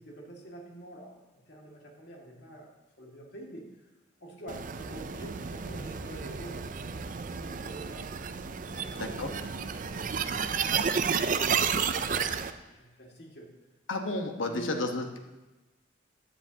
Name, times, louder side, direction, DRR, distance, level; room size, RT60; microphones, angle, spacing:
voice 1, 0.0-3.9 4.2-8.1 8.6-13.5 14.4-14.9, right 1 dB, 60° left, -1 dB, 2.0 m, -47 dB
sound 1, 4.5-12.5, right 6 dB, 45° right, 0.4 m, -31 dB
voice 2, 8.9-9.3 13.9-15.2, left 2 dB, 85° left, 4 dB, 1.1 m, -32 dB
15.5 x 9.9 x 2.8 m, 1.1 s
head